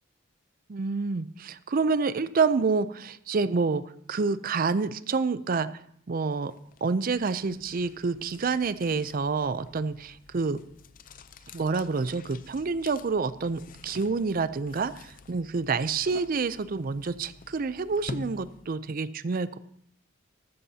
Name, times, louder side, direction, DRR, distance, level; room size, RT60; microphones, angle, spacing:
voice 1, 0.7-3.8 4.1-5.7 6.1-6.5 6.8-10.6 11.5-19.6, right 4 dB, 45° right, 15 dB, 0.5 m, -28 dB
sound 1, 6.5-18.9, left 3 dB, 45° left, 0.5 m, -47 dB
13.5 x 13.5 x 2.8 m, 0.68 s
head